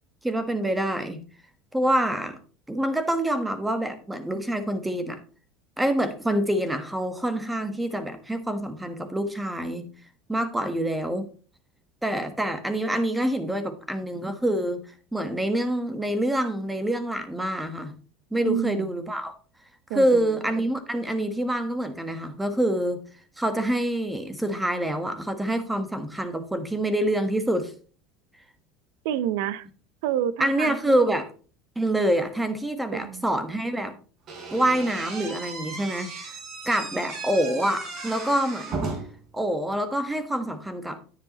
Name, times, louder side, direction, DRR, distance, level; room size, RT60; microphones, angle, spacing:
voice 1, 0.2-1.2 1.7-2.4 2.7-5.2 5.8-9.9 10.3-11.3 12.0-14.8 15.1-17.9 18.3-19.3 19.9-23.0 23.4-27.7 30.4-31.3 31.7-34.0 34.5-36.4 36.6-38.9 39.3-41.0, right 1 dB, 5° right, 9 dB, 1.4 m, -26 dB
voice 2, 18.4-19.1 19.9-20.4 29.0-29.7 30.0-31.1 32.9-33.3, right 10 dB, 75° right, 16 dB, 0.8 m, -29 dB
Slam / Squeak, 34.3-39.2, right 3 dB, 40° right, 3.8 m, -36 dB
10.0 x 9.7 x 3.0 m, 0.39 s
supercardioid pair, 135°, 0 cm